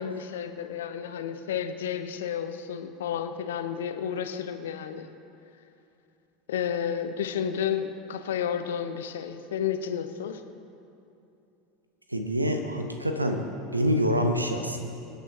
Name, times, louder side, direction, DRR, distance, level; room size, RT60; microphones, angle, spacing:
voice 1, 0.0-5.1 6.5-10.4, left 8 dB, 65° left, 8 dB, 0.8 m, -31 dB
voice 2, 12.1-13.5 13.7-14.8, equal, 85° right, 4 dB, 1.0 m, -26 dB
26.5 x 9.4 x 2.8 m, 2.8 s
figure-of-eight pair, 75°, 0 cm